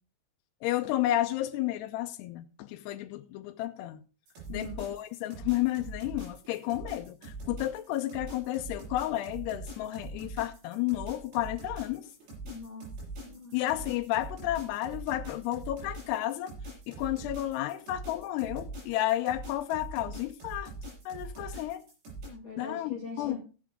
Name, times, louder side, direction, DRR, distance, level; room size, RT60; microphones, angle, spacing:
voice 1, 0.6-4.0 4.5-12.1 13.5-16.5 16.9-20.7 21.1-21.8 22.6-23.4, left 14 dB, 85° left, 2.7 m, -32 dB
sound 1, 4.3-22.3, right 2 dB, 75° right, 8.1 m, -43 dB
voice 2, 4.5-4.8 12.4-12.9 13.2-13.5 22.3-23.4, left 3 dB, 35° left, 2.7 m, -41 dB
15.0 x 8.9 x 3.6 m
omnidirectional pair, 4.7 m